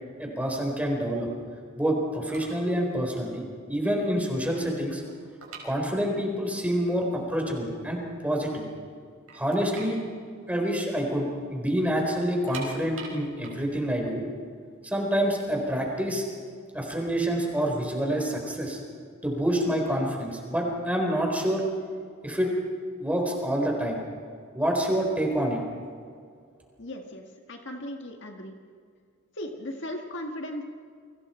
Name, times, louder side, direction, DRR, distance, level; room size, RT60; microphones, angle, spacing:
voice 1, 0.2-1.3 1.8-5.0 5.6-8.0 8.2-8.7 9.3-10.0 10.5-14.2 14.8-16.2 16.7-18.8 19.2-21.6 22.2-22.5 23.0-24.0 24.5-25.6, equal, 5° right, 0 dB, 4.3 m, -27 dB
sound 1, 2.3-2.7 3.0-3.2 3.7-3.8 4.1-6.4 6.6-6.7 7.4-7.5 7.8-8.6 8.9-9.0 9.3-11.3 11.5-11.7 12.2-15.2 15.9-17.6, right 4 dB, 85° right, 5.5 m, -45 dB
voice 2, 26.8-28.5 29.4-30.6, left 1 dB, 55° left, 3 dB, 1.9 m, -37 dB
30.0 x 24.5 x 4.5 m, 2.2 s
head